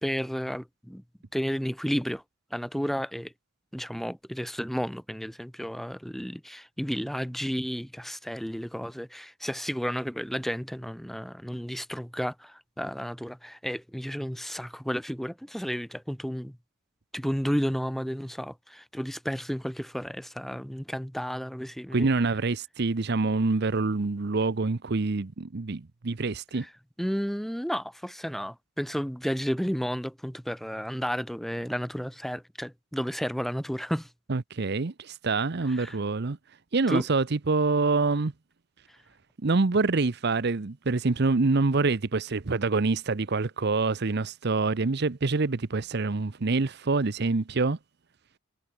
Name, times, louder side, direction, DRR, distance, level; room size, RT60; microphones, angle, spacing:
voice 1, 0.0-1.0 1.3-2.2 2.5-3.3 3.7-16.6 17.1-22.1 26.6-26.7 27.0-34.1 35.7-36.0 36.9-37.0, equal, ahead, 1.6 m, -32 dB
voice 2, 21.9-26.6 34.3-36.4 36.7-38.3 39.4-47.8, right 3 dB, 55° right, 0.8 m, -26 dB
head